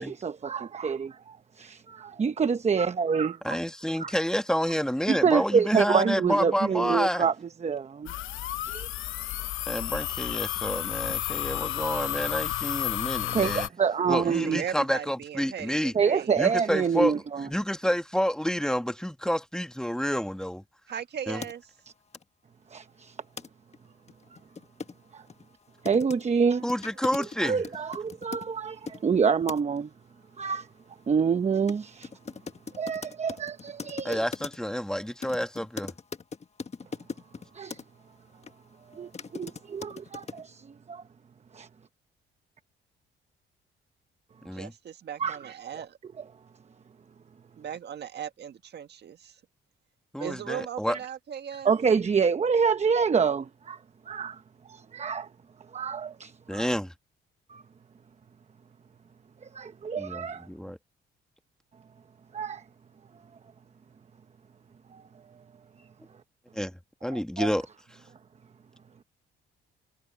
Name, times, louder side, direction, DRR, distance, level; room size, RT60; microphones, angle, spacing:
voice 1, 0.0-3.6 4.0-4.1 5.1-7.3 7.6-8.1 8.6-8.9 13.3-14.6 15.9-17.5 22.7-23.2 25.1-25.2 25.8-26.7 27.4-29.9 30.4-30.7 31.1-32.1 32.7-34.2 37.5-37.8 38.9-41.0 41.5-41.7 45.2-45.4 46.2-46.3 51.6-53.8 54.1-54.4 54.7-55.3 55.7-56.7 57.5-57.6 59.4-60.5 62.3-62.6 64.9-65.0 67.1-67.5, right 6 dB, 35° right, 1.0 m, -27 dB
voice 2, 3.4-7.2 9.7-13.7 14.1-15.9 16.4-17.1 17.5-20.6 21.3-21.4 26.6-27.6 34.0-35.9 44.4-44.7 50.1-51.0 56.5-56.9 60.0-60.8 66.5-66.7 67.0-67.7, equal, 5° left, 1.8 m, -29 dB
sound 1, 8.1-13.7, left 14 dB, 90° left, 1.0 m, -32 dB
voice 3, 14.1-16.3 20.9-21.7 44.5-46.0 47.6-49.4 50.2-51.7, right 9 dB, 55° right, 1.7 m, -38 dB
sound 2, 21.4-21.5 22.1-22.2 23.4-23.5 23.7-23.8 24.1-29.0 29.5-29.8 31.7-31.8 32.0-34.8 35.2-37.8 38.4-38.5 38.9-40.4, left 5 dB, 35° left, 1.5 m, -40 dB
cardioid pair, 90°, 20 cm